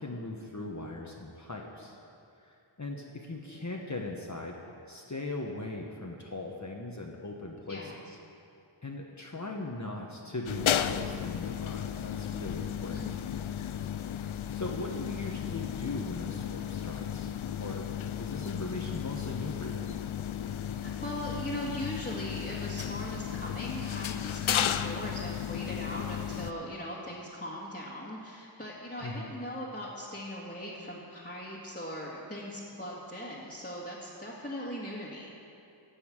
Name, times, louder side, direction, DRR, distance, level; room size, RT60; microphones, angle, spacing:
voice 1, 0.0-2.0 2.4-4.6 4.9-8.2 8.8-13.0 14.2-17.3 17.6-17.9 18.2-19.9 29.0-29.3, left 2 dB, 35° left, -1 dB, 1.1 m, -39 dB
sound 1, 10.5-26.5, left 9 dB, 75° left, 0.5 m, -34 dB
voice 2, 12.9-13.2 20.8-35.3, equal, 15° left, -7 dB, 1.9 m, -39 dB
14.5 x 5.6 x 8.8 m, 2.6 s
wide cardioid pair, 60°, 48 cm